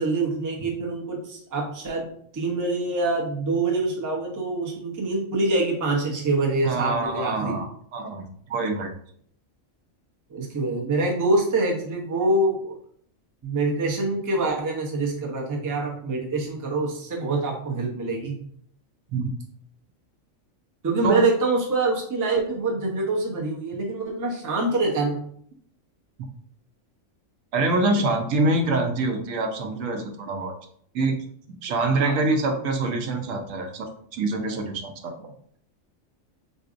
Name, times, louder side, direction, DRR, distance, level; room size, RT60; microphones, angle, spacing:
voice 1, 0.0-7.6 10.3-12.7 13.4-18.4 20.8-25.2 31.9-32.2, right 2 dB, 25° right, -1 dB, 0.4 m, -25 dB
voice 2, 6.6-8.9 19.1-19.3 21.0-21.2 27.5-30.5 30.9-31.1 31.6-33.9 34.1-35.3, right 2 dB, 75° right, 4 dB, 0.9 m, -25 dB
3.9 x 2.6 x 2.5 m, 0.62 s
omnidirectional pair, 1.4 m